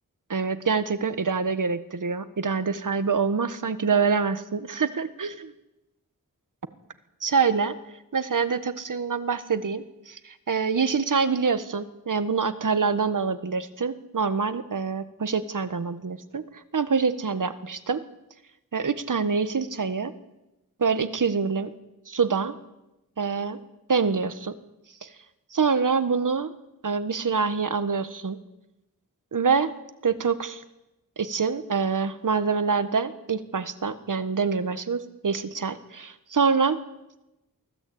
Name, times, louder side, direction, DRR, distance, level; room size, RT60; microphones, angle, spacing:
voice 1, 0.3-5.5 7.2-7.8 8.1-18.0 18.7-20.1 20.8-21.7 22.1-22.5 23.2-23.6 23.9-24.5 25.0-25.1 25.5-26.5 26.8-28.4 29.3-29.7 30.0-30.6 31.2-36.8, right 5 dB, 65° right, 12 dB, 1.4 m, -25 dB
23.5 x 16.0 x 8.7 m, 0.96 s
wide cardioid pair, 85°, 34 cm